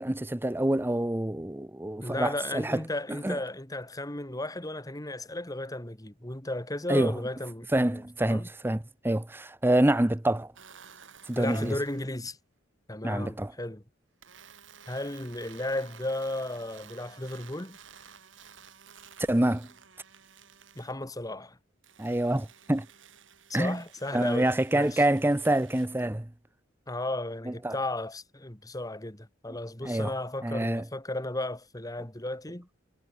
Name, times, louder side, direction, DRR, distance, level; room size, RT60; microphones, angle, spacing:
voice 1, 0.0-2.8 3.1-3.4 6.9-7.1 7.7-10.5 11.3-11.7 13.0-13.5 19.3-19.7 22.0-22.9 23.5-23.8 24.1-26.3 27.5-27.7 29.8-30.1 30.4-30.8, right 1 dB, 10° right, 0.7 m, -26 dB
voice 2, 2.0-8.5 11.3-12.4 12.9-13.8 14.9-17.8 20.8-21.6 23.5-25.0 26.9-32.7, left 1 dB, 20° left, 2.0 m, -34 dB
sound 1, 10.6-12.1 14.2-21.0 21.8-25.9, right 7 dB, 70° right, 5.9 m, -53 dB
head